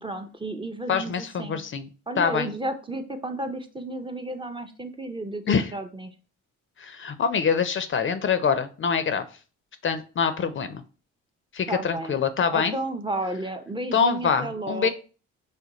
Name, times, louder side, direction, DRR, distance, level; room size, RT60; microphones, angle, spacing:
voice 1, 0.0-1.6 2.1-6.1 11.7-12.2 12.5-14.9, right 2 dB, 15° right, 6 dB, 0.5 m, -32 dB
voice 2, 0.9-1.9 2.2-2.5 5.5-5.7 6.8-9.3 9.8-10.8 11.5-12.8 13.9-14.9, left 6 dB, 40° left, 10 dB, 0.5 m, -25 dB
4.9 x 2.2 x 4.0 m, 0.36 s
cardioid pair, 90°, 30 cm